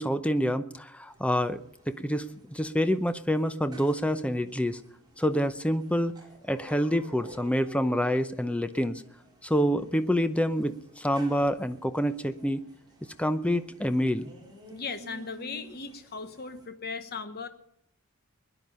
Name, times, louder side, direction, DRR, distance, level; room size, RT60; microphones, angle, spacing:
voice 1, 0.0-1.6 1.9-4.8 5.2-6.1 6.4-9.0 9.4-12.6 13.2-14.3, equal, 5° left, 11 dB, 0.7 m, -27 dB
sound 1, 1.1-16.7, right 1 dB, 20° right, 4.5 m, -52 dB
voice 2, 14.7-17.5, left 4 dB, 45° left, 9 dB, 1.1 m, -37 dB
21.5 x 11.0 x 5.5 m, 0.74 s
head